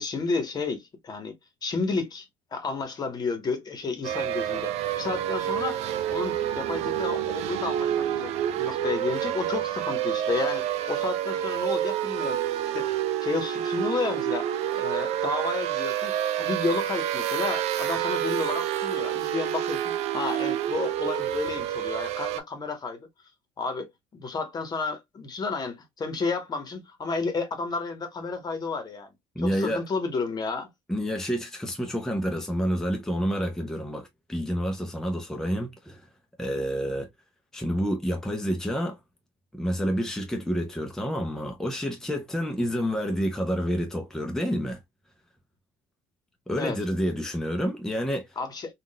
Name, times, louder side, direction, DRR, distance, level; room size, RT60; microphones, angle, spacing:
voice 1, 0.0-1.4 1.6-12.4 12.7-12.9 13.2-23.1 23.6-29.1 29.4-30.7 46.6-46.8 48.4-48.7, left 4 dB, 35° left, 1.0 m, -31 dB
sound 1, 4.0-22.4, right 11 dB, 65° right, 0.5 m, -28 dB
voice 2, 29.4-29.8 30.9-36.0 36.4-37.1 37.5-39.0 39.5-44.8 46.5-48.3, equal, 5° left, 0.7 m, -29 dB
3.7 x 2.4 x 2.2 m
supercardioid pair, 90°, 12 cm